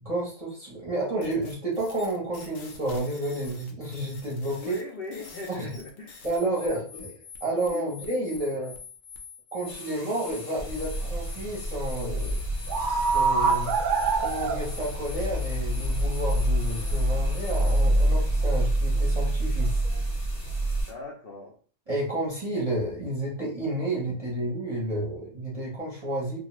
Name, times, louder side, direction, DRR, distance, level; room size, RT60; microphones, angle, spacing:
voice 1, 0.0-4.7 5.5-5.7 6.2-7.1 7.4-8.7 9.5-12.4 12.8-13.7 14.2-19.8 21.9-26.4, right 1 dB, 35° right, -4 dB, 0.8 m, -31 dB
sound 1, 1.2-18.1, left 6 dB, 90° left, 1.0 m, -46 dB
voice 2, 4.6-6.2 6.4-7.0 7.7-8.0 8.5-8.7 20.9-21.6, left 4 dB, 60° left, -2 dB, 0.7 m, -39 dB
sound 2, 9.7-20.9, left 1 dB, 35° left, 0.8 m, -48 dB
sound 3, 10.6-20.8, right 2 dB, 60° right, 0.5 m, -25 dB
2.4 x 2.2 x 2.9 m, 0.42 s
omnidirectional pair, 1.3 m